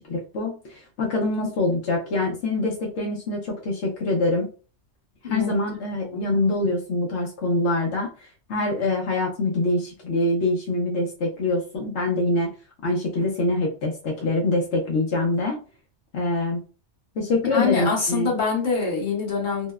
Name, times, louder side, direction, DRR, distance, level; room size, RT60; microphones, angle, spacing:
voice 1, 0.0-4.5 5.2-12.5 12.8-15.6 16.1-16.6 17.2-18.3, left 2 dB, 80° left, -2 dB, 1.0 m, -25 dB
voice 2, 17.5-19.7, left 5 dB, 45° left, -4 dB, 1.2 m, -25 dB
2.8 x 2.0 x 2.2 m, 0.35 s
omnidirectional pair, 1.2 m